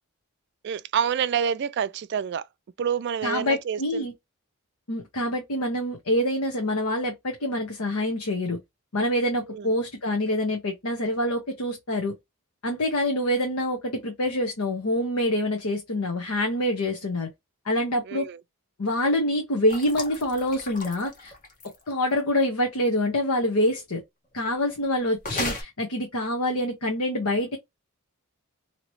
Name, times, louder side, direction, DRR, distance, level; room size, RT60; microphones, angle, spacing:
voice 1, 0.6-2.5 2.8-4.1 9.5-9.7 18.0-18.4, right 7 dB, 50° right, 0.3 m, -28 dB
voice 2, 3.2-4.1 4.9-8.6 8.9-12.1 12.6-17.3 17.6-18.3 18.8-21.3 21.9-24.0 24.3-27.6, left 1 dB, 75° left, 0.9 m, -26 dB
sound 1, 19.7-21.9 25.2-25.6, left 2 dB, 40° left, 1.2 m, -34 dB
2.9 x 2.9 x 2.9 m
head